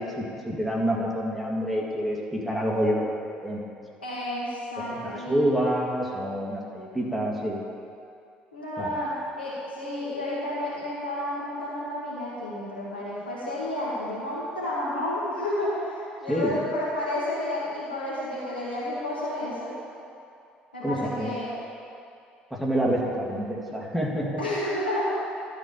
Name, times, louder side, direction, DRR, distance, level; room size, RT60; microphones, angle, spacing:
voice 1, 0.0-3.2 3.4-3.6 4.9-7.6 8.8-9.0 16.3-16.5 20.8-21.3 22.5-24.4, equal, ahead, -3 dB, 2.2 m, -27 dB
voice 2, 4.0-5.4 8.5-19.8 20.7-21.5 24.4-25.1, left 1 dB, 90° left, -7 dB, 2.0 m, -31 dB
12.5 x 4.4 x 8.2 m, 2.5 s
figure-of-eight pair, 55°, 5 cm